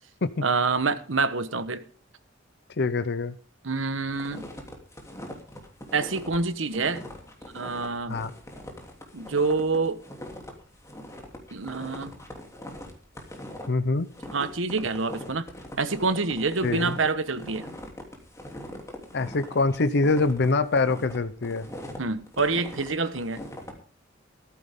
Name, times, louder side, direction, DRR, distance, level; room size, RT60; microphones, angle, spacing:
voice 1, 0.4-1.8 3.6-4.4 5.9-7.0 7.5-8.2 9.1-10.0 11.5-12.1 14.3-15.5 15.8-17.7 22.0-23.4, right 4 dB, 70° right, 1.2 m, -27 dB
voice 2, 2.8-3.4 8.1-8.3 13.7-14.1 16.6-16.9 19.1-21.7, left 3 dB, 60° left, 0.7 m, -24 dB
sound 1, 4.1-23.7, left 1 dB, 15° left, 3.0 m, -41 dB
15.0 x 13.5 x 3.7 m
head